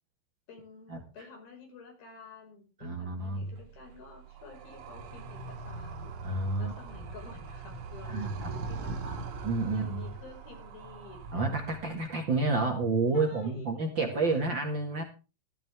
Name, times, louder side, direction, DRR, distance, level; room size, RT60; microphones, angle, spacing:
voice 1, 0.5-6.2 6.6-11.5 13.1-13.7 14.1-14.4, left 4 dB, 85° left, 2 dB, 7.1 m, -50 dB
voice 2, 2.8-3.5 6.2-6.7 8.1-8.5 9.4-10.0 11.3-15.0, right 3 dB, 40° right, 1 dB, 2.1 m, -29 dB
Animal, 3.5-12.1, right 4 dB, 55° right, 2.4 m, -42 dB
14.0 x 14.0 x 3.5 m, 0.32 s
omnidirectional pair, 4.2 m